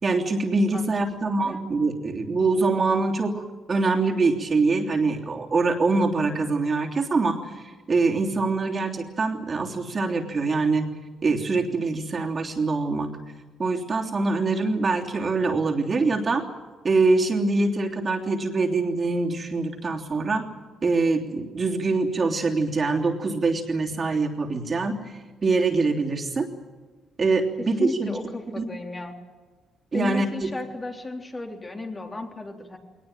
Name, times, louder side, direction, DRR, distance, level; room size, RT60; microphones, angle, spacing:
voice 1, 0.0-10.9 11.2-13.1 13.6-16.4 16.8-20.5 20.8-25.0 25.4-26.5 27.2-28.1 28.6-28.7 29.9-30.5, right 3 dB, 40° right, 1 dB, 3.2 m, -24 dB
voice 2, 1.2-1.7 27.6-29.2 29.9-32.8, left 2 dB, 25° left, 2 dB, 3.5 m, -34 dB
21.0 x 19.5 x 9.1 m, 1.4 s
cardioid pair, 90°, 0 cm